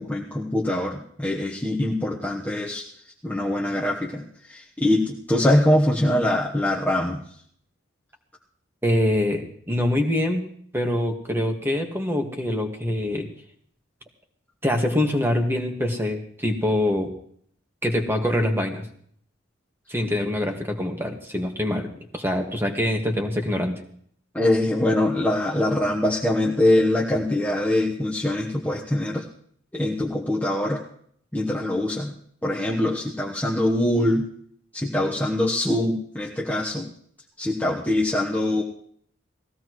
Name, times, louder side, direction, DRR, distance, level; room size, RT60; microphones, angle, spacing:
voice 1, 0.0-2.8 3.2-7.2 24.3-29.2 29.7-30.8 31.3-32.1 32.4-34.2 34.7-36.9 37.4-38.6, left 1 dB, 10° left, -3 dB, 1.2 m, -23 dB
voice 2, 8.8-10.4 10.7-13.3 14.6-17.1 17.8-18.9 19.9-21.9 22.1-23.7, left 1 dB, 10° right, 2 dB, 1.8 m, -24 dB
19.5 x 16.0 x 3.2 m, 0.62 s
head